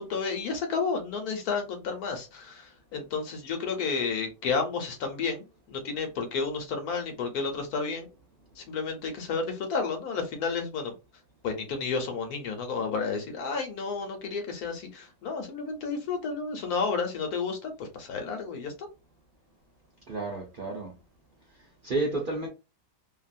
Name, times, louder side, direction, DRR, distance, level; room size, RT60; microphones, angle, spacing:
voice 1, 0.0-8.1 8.6-10.9 11.4-18.9, left 5 dB, 70° left, 1.3 m, -31 dB
voice 2, 20.1-20.9 21.8-22.5, right 2 dB, 50° right, 0.6 m, -30 dB
3.0 x 2.4 x 2.5 m
omnidirectional pair, 1.7 m